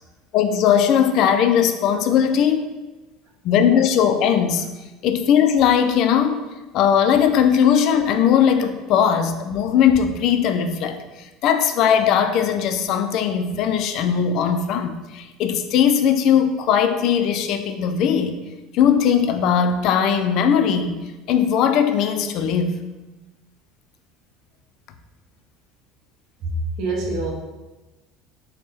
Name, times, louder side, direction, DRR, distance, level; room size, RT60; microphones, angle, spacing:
voice 1, 0.3-2.7 3.4-4.7 5.0-6.4 6.7-18.4 18.7-21.0 21.3-22.8, left 8 dB, 55° left, 8 dB, 0.3 m, -19 dB
voice 2, 26.4-27.3, right 2 dB, 50° right, -1 dB, 0.8 m, -25 dB
3.5 x 2.1 x 4.1 m, 1.1 s
supercardioid pair, 125°, 0 cm